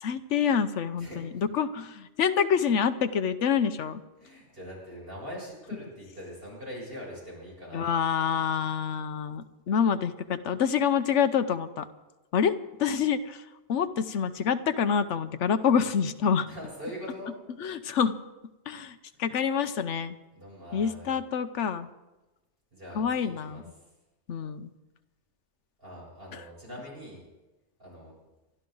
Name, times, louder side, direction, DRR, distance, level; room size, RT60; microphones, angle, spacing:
voice 1, 0.0-4.0 7.7-11.8 12.3-13.4 13.7-16.5 17.6-18.2 18.7-20.2 20.7-21.9 22.9-23.6 24.3-24.7 26.3-26.4, left 7 dB, 90° left, 11 dB, 1.1 m, -27 dB
voice 2, 1.0-1.5 4.2-8.4 16.4-17.3 19.1-19.5 20.3-21.1 22.7-23.6 25.8-27.2 27.8-28.2, equal, 55° right, -4 dB, 7.5 m, -43 dB
27.5 x 12.5 x 3.9 m, 1.1 s
omnidirectional pair, 1.2 m